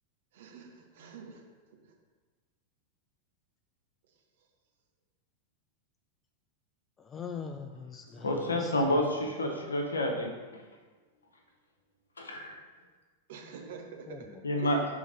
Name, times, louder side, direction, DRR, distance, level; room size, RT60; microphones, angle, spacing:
voice 1, 0.3-1.4 1.8-1.9 13.3-14.2 14.6-14.8, right 6 dB, 55° right, 1 dB, 1.1 m, -45 dB
voice 2, 7.0-9.0 14.1-14.4, left 6 dB, 20° left, 6 dB, 0.4 m, -42 dB
voice 3, 8.2-10.6 12.2-12.6 14.4-14.8, left 1 dB, 75° left, 2 dB, 1.0 m, -29 dB
6.2 x 3.8 x 5.0 m, 1.3 s
figure-of-eight pair, 90°, 0 cm